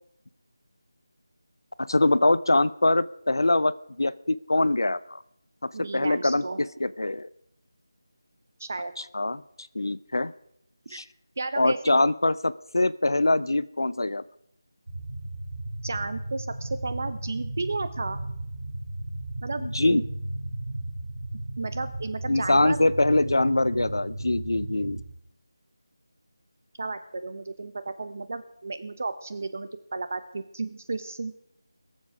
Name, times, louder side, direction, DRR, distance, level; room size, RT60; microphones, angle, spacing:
voice 1, 1.8-3.7 4.0-5.2 5.9-6.4 6.8-7.3 9.0-10.3 10.9-11.0 11.6-14.2 19.6-20.0 22.3-25.0, left 2 dB, 80° left, 17 dB, 0.6 m, -23 dB
voice 2, 5.7-6.6 8.6-8.9 10.9-11.0 11.4-11.8 15.8-18.2 19.4-20.0 21.6-22.9 26.8-31.3, right 3 dB, 35° right, 11 dB, 0.9 m, -33 dB
sound 1, 14.9-25.0, right 1 dB, 70° right, 4.5 m, -35 dB
21.5 x 7.4 x 4.8 m, 0.76 s
figure-of-eight pair, 175°, 2 cm